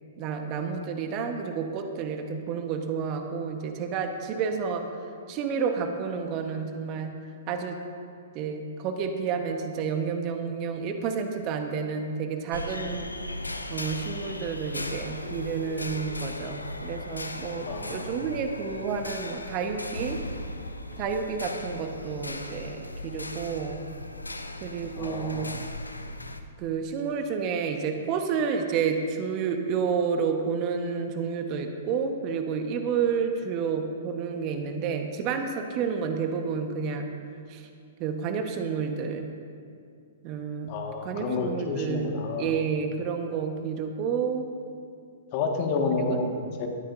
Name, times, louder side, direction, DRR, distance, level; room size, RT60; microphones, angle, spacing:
voice 1, 0.2-4.8 5.3-7.1 7.5-7.8 8.3-13.1 13.7-20.2 21.0-23.9 24.6-25.5 26.6-37.1 37.5-37.7 38.0-39.3 40.2-40.8 41.0-44.5 46.1-46.2, right 6 dB, 35° right, 5 dB, 1.3 m, -30 dB
sound 1, 12.5-26.4, left 2 dB, 85° left, 0.8 m, -37 dB
voice 2, 17.6-18.3 24.9-25.7 40.7-42.5 45.3-46.7, left 4 dB, 40° left, 2 dB, 1.8 m, -30 dB
20.0 x 13.5 x 2.7 m, 2.4 s
figure-of-eight pair, 110°, 0 cm